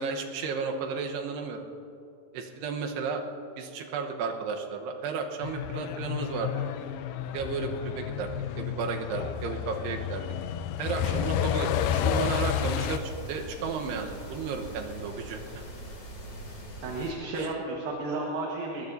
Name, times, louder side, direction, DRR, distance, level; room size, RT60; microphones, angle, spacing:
voice 1, 0.0-1.7 2.3-3.2 3.6-6.5 7.3-8.3 8.6-10.3 10.8-15.6 17.3-17.5, right 5 dB, 85° right, 3 dB, 3.1 m, -33 dB
Truck, 5.4-13.0, left 9 dB, 80° left, 2.3 m, -30 dB
sound 1, 11.7-17.1, equal, 45° left, 3.0 m, -42 dB
voice 2, 16.8-18.9, right 2 dB, 65° right, -2 dB, 3.1 m, -33 dB
21.5 x 20.0 x 2.7 m, 2.8 s
omnidirectional pair, 4.7 m